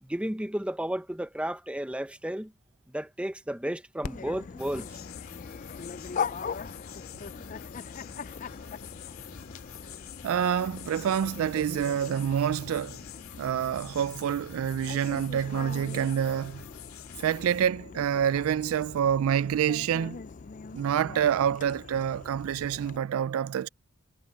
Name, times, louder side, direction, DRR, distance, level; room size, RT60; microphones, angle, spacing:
voice 1, 0.0-2.5 2.9-5.0, right 1 dB, 5° right, 0.7 m, -33 dB
Dog, 4.0-23.0, left 6 dB, 35° left, 0.4 m, -41 dB
sound 1, 4.6-17.7, left 9 dB, 75° left, 2.6 m, -47 dB
voice 2, 10.2-13.0 13.4-16.6 17.2-20.2 20.7-23.7, right 9 dB, 75° right, 0.3 m, -27 dB
head